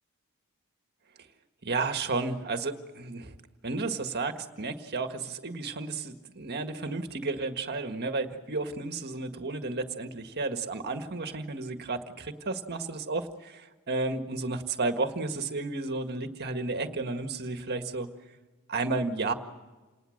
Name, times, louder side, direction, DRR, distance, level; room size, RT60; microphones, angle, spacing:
voice 1, 1.6-3.3 3.6-18.1 18.7-19.3, right 3 dB, 50° right, 7 dB, 1.8 m, -32 dB
28.5 x 19.5 x 6.5 m, 1.3 s
head